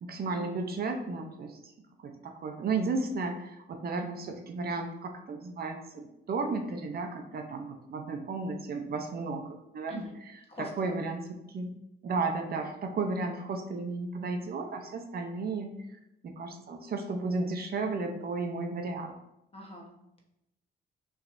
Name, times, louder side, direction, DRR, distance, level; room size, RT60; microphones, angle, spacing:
voice 1, 0.0-1.7 2.0-10.0 10.8-11.7 12.0-19.2, right 3 dB, 50° right, 4 dB, 0.6 m, -34 dB
voice 2, 10.5-11.0 19.5-20.2, left 1 dB, 30° left, 1 dB, 1.1 m, -44 dB
5.8 x 3.2 x 2.6 m, 0.84 s
cardioid pair, 90°, 20 cm